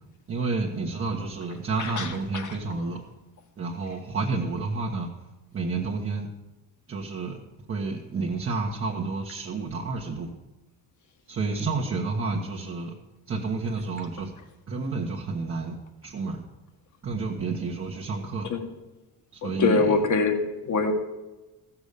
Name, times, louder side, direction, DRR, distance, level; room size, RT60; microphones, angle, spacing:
voice 1, 0.3-3.0 3.6-5.1 5.5-6.3 6.9-7.4 7.7-10.3 11.3-12.9 13.3-14.3 14.7-15.8 16.0-16.4 17.0-18.5 19.3-20.0, right 3 dB, 35° right, -3 dB, 1.3 m, -30 dB
voice 2, 19.4-20.9, left 4 dB, 50° left, 6 dB, 1.8 m, -24 dB
15.0 x 7.2 x 6.7 m, 1.1 s
cardioid pair, 140°, 38 cm